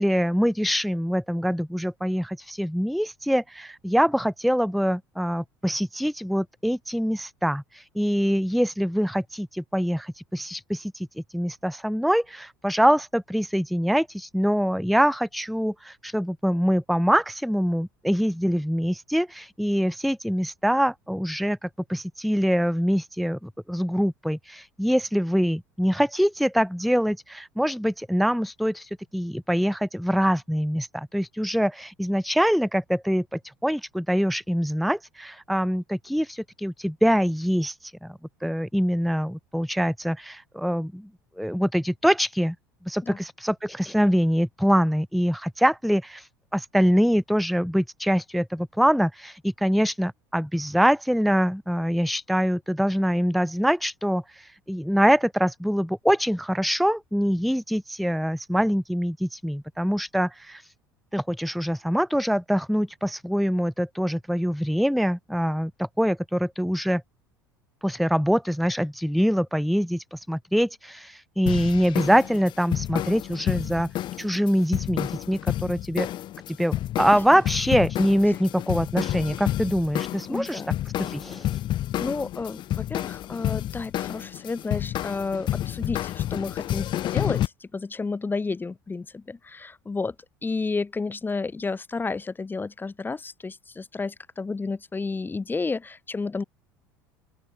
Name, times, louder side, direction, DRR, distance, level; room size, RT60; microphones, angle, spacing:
voice 1, 0.0-41.1 41.4-42.6 42.9-60.7 61.1-67.0 67.8-73.9 74.2-76.1 76.5-80.6 81.0-81.6, equal, ahead, 0.3 m, -24 dB
sound 1, 71.5-87.5, left 13 dB, 45° left, 1.8 m, -30 dB
voice 2, 80.3-80.7 82.0-90.1 90.4-96.4, left 4 dB, 20° left, 2.9 m, -31 dB
open air
hypercardioid pair, 70°, 11 cm